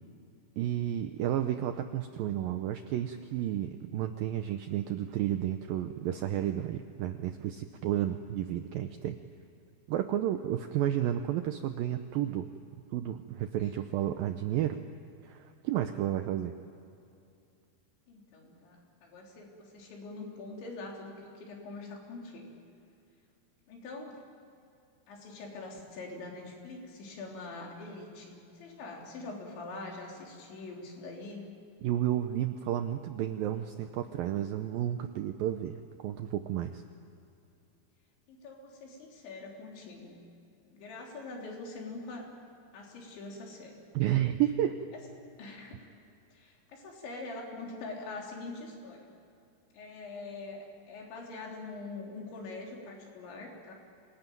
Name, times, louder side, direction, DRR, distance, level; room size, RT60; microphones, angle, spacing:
voice 1, 0.6-9.2 9.9-12.5 12.9-14.8 15.2-16.5 31.8-36.8 43.9-44.8, right 11 dB, 85° right, 8 dB, 2.0 m, -31 dB
voice 2, 18.1-22.5 23.7-24.2 25.1-31.5 38.3-40.2 40.6-42.3 42.7-43.7 45.4-45.9 46.3-49.1 49.7-53.7, left 3 dB, 85° left, 0 dB, 5.9 m, -44 dB
26.0 x 19.5 x 9.2 m, 2.6 s
omnidirectional pair, 5.1 m